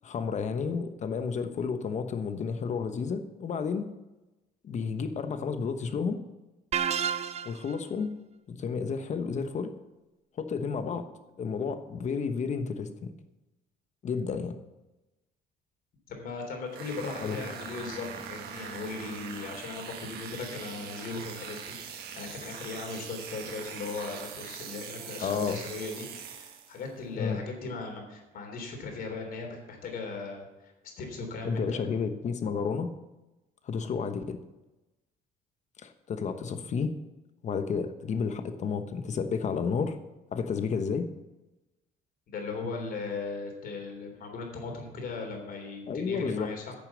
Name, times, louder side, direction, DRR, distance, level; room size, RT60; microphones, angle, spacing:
voice 1, 0.0-3.9 4.6-6.2 7.4-8.1 8.5-9.7 10.4-11.1 11.4-13.1 14.0-14.6 17.2-17.4 25.2-25.6 27.1-27.4 31.4-32.9 33.6-34.4 35.8-36.9 37.4-40.0 40.3-41.1 45.9-46.5, left 5 dB, 45° left, 9 dB, 1.1 m, -31 dB
sound 1, 6.7-7.8, right 8 dB, 40° right, 0.5 m, -30 dB
voice 2, 16.1-31.8 42.3-46.7, left 4 dB, 60° left, 2 dB, 3.4 m, -38 dB
sound 2, 16.7-26.9, right 7 dB, 70° right, 1.5 m, -42 dB
10.0 x 6.9 x 7.2 m, 1.0 s
cardioid pair, 110°, 17 cm